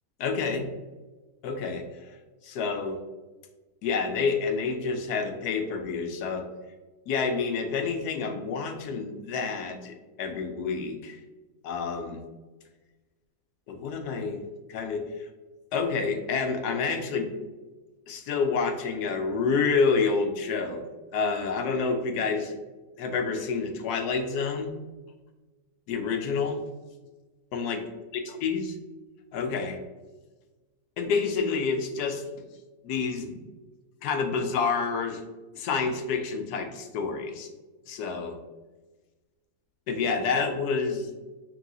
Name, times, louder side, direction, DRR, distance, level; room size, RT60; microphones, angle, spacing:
voice 1, 0.2-0.7 1.4-1.9 2.4-3.0 3.8-6.5 7.1-11.2 11.6-12.2 13.7-14.4 14.7-15.0 15.7-17.3 18.1-20.8 21.1-22.6 23.0-24.7 25.9-26.6 27.5-27.8 28.3-28.7 29.3-29.8 31.0-32.2 32.8-33.4 34.0-35.2 35.6-37.5 37.9-38.4 39.9-41.1, left 5 dB, 75° left, 5 dB, 1.1 m, -28 dB
5.6 x 2.7 x 2.7 m, 1.2 s
omnidirectional pair, 1.7 m